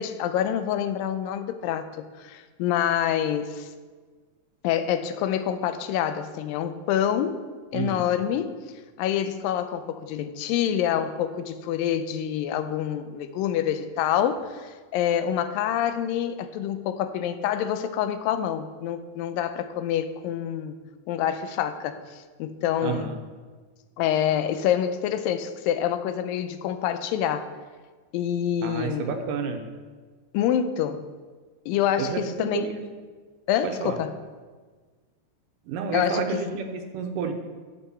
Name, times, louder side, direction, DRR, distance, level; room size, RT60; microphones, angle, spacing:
voice 1, 0.0-3.7 4.6-7.4 7.7-8.6 9.0-20.8 21.1-23.1 24.0-27.5 28.1-29.1 30.3-31.0 31.7-32.7 33.5-34.1 35.9-36.4, left 10 dB, 90° left, 10 dB, 2.3 m, -26 dB
voice 2, 7.7-8.1 22.8-23.2 28.6-29.6 32.0-32.8 33.6-34.0 35.7-37.3, right 6 dB, 75° right, 5 dB, 2.3 m, -30 dB
11.0 x 7.7 x 4.2 m, 1.4 s
omnidirectional pair, 4.0 m